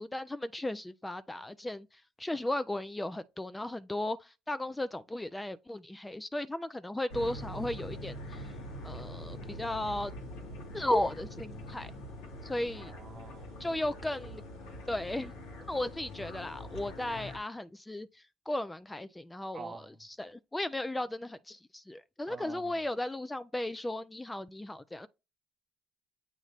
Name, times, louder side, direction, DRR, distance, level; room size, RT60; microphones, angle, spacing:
voice 1, 0.0-1.9 2.2-8.4 8.8-10.1 10.7-11.9 12.4-12.9 13.6-14.4 14.9-15.3 15.7-25.1, left 1 dB, 10° left, 0.4 m, -35 dB
sound 1, 7.1-17.4, left 1 dB, 80° left, 2.0 m, -44 dB
voice 2, 12.8-13.5 19.5-19.9 22.3-22.7, right 5 dB, 35° right, 0.7 m, -46 dB
7.8 x 3.0 x 4.1 m
supercardioid pair, 75°, 0 cm